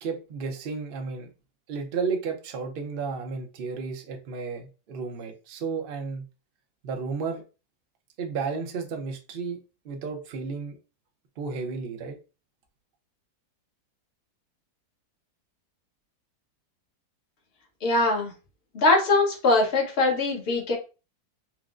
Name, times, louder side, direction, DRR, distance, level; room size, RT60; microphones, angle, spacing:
voice 1, 0.0-1.3 1.7-6.3 6.8-7.4 8.2-9.6 9.8-10.8 11.4-12.2, right 5 dB, 60° right, 0.6 m, -32 dB
voice 2, 17.8-18.3 18.7-20.7, left 2 dB, 45° left, 1.1 m, -22 dB
4.4 x 2.0 x 2.4 m
omnidirectional pair, 1.7 m